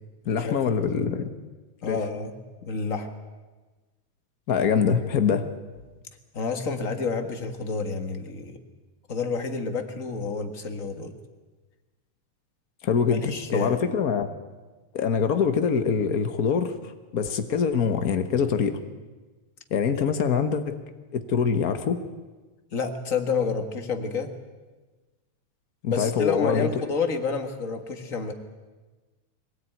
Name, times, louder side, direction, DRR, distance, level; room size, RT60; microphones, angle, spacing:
voice 1, 0.3-1.3 1.9-2.0 4.5-5.5 12.8-14.3 14.9-16.7 17.1-18.8 19.7-20.8 21.1-22.0 25.8-26.7, left 6 dB, 85° left, 8 dB, 0.8 m, -24 dB
voice 2, 1.8-2.3 2.6-3.1 6.3-8.6 9.1-11.1 13.1-13.9 22.7-24.3 25.9-28.3, left 4 dB, 35° left, 6 dB, 1.6 m, -29 dB
23.0 x 18.0 x 9.3 m, 1.3 s
omnidirectional pair, 3.4 m